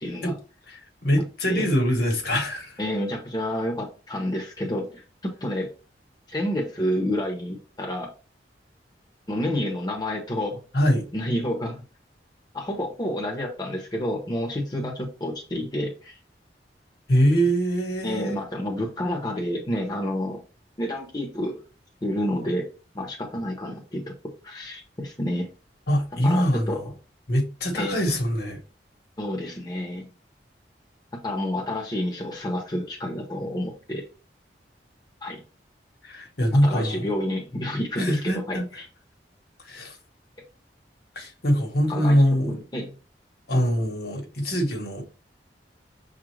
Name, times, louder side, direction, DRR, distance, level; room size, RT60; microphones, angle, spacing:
voice 1, 0.0-0.3 1.5-1.7 2.8-5.7 6.3-8.1 9.3-10.6 11.1-11.8 12.5-16.2 18.0-20.4 20.8-21.6 22.0-22.7 22.9-24.0 24.4-25.5 26.2-26.8 27.7-28.0 29.2-30.1 31.1-34.0 35.2-35.4 36.6-38.9 41.9-42.2 42.5-42.9, left 1 dB, 25° left, 0.9 m, -29 dB
voice 2, 0.7-2.8 10.7-11.0 17.1-18.4 25.9-26.9 27.3-28.6 36.0-37.0 38.0-38.6 39.7-40.0 41.1-42.6 43.5-45.0, equal, 60° left, 1.3 m, -23 dB
6.5 x 2.5 x 3.2 m
head